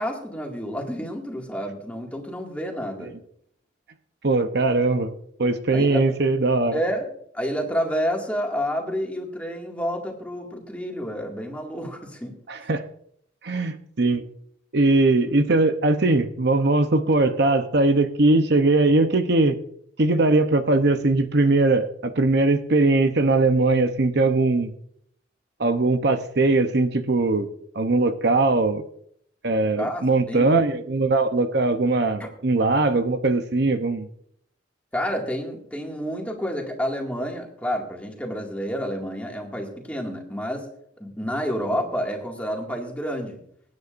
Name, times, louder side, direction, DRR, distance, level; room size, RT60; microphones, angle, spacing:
voice 1, 0.0-3.1 5.7-6.0 6.7-7.0 7.3-12.4 29.8-30.5 32.2-32.3 34.9-40.7 41.0-43.4, equal, 5° left, 0 dB, 2.1 m, -29 dB
voice 2, 4.2-5.1 5.4-6.8 12.5-12.8 13.4-14.3 14.7-19.6 20.0-24.7 25.6-27.5 27.7-28.8 29.4-34.1, right 2 dB, 60° right, 8 dB, 0.8 m, -20 dB
22.5 x 9.7 x 2.6 m, 0.67 s
head